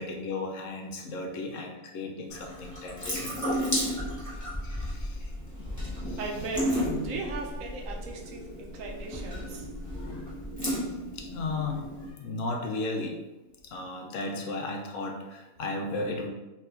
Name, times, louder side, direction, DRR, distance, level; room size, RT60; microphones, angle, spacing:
voice 1, 0.0-3.3 4.6-5.2 5.6-6.3 10.0-10.1 11.1-11.8 12.2-13.2 13.6-16.3, left 3 dB, 70° left, 1 dB, 0.9 m, -35 dB
Water tap faucet / Sink (filling or washing) / Drip, 2.3-12.1, equal, 15° left, 1.1 m, -33 dB
voice 2, 6.2-9.7, right 3 dB, 70° right, 1 dB, 1.0 m, -37 dB
4.6 x 3.3 x 2.5 m, 1.1 s
omnidirectional pair, 1.5 m